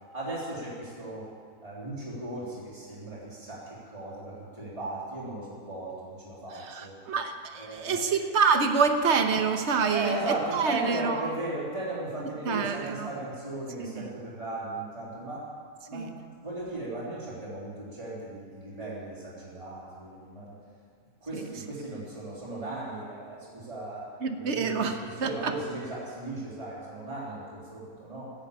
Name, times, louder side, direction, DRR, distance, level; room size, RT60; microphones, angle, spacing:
voice 1, 0.1-1.3 1.6-7.0 7.5-8.0 9.9-15.5 15.9-20.6 21.2-24.1 24.4-28.3, right 2 dB, 25° right, -8 dB, 3.7 m, -37 dB
voice 2, 6.7-10.1 10.5-11.2 12.4-13.1 13.8-14.0 15.9-16.1 24.2-25.3, right 5 dB, 55° right, 6 dB, 1.4 m, -26 dB
15.0 x 9.6 x 8.8 m, 2.1 s
omnidirectional pair, 1.5 m